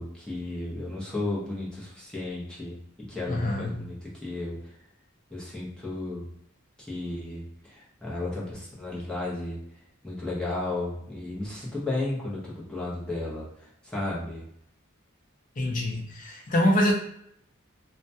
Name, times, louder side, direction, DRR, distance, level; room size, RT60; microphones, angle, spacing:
voice 1, 0.0-4.6 5.3-6.3 6.8-9.6 10.0-14.4, left 2 dB, 5° left, -6 dB, 0.6 m, -34 dB
voice 2, 3.3-3.8 15.6-16.9, left 1 dB, 40° left, 0 dB, 0.5 m, -25 dB
2.3 x 2.1 x 2.6 m, 0.71 s
head